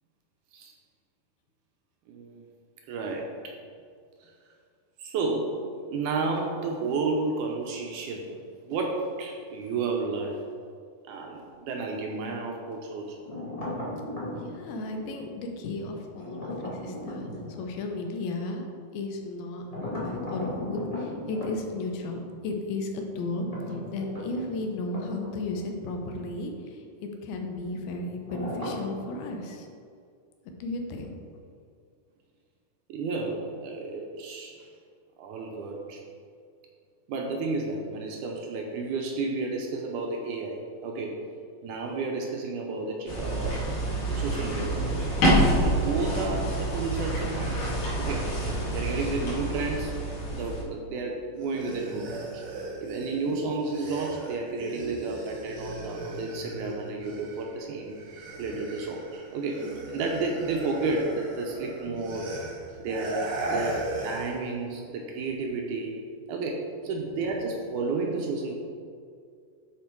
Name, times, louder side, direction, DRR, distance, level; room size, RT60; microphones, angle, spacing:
voice 1, 2.1-2.4 2.9-3.6 4.2-4.3 5.0-8.3 8.6-10.4 11.1-13.2 32.9-34.7 35.2-36.0 37.1-41.2 41.6-43.7 44.1-45.1 45.6-47.6 48.0-48.3 48.7-49.9 50.3-52.4 52.8-58.0 58.4-62.3 62.8-66.0 66.3-68.5, right 3 dB, 80° right, 1 dB, 1.9 m, -32 dB
sound 1, 13.2-14.6 16.1-17.6 19.7-21.5 23.3-25.7 26.0-26.1 28.2-29.0, left 1 dB, 35° left, 0.6 m, -36 dB
voice 2, 14.4-18.7 18.9-29.7 30.6-31.1 53.2-53.3 59.6-59.9 62.1-62.2, left 2 dB, 85° left, 3 dB, 2.7 m, -34 dB
sound 2, 43.1-50.6, right 1 dB, 55° left, 2.9 m, -27 dB
sound 3, 51.4-57.6 57.9-64.4, right 2 dB, 55° right, 1.5 m, -37 dB
9.5 x 4.4 x 4.5 m, 2.3 s
omnidirectional pair, 4.2 m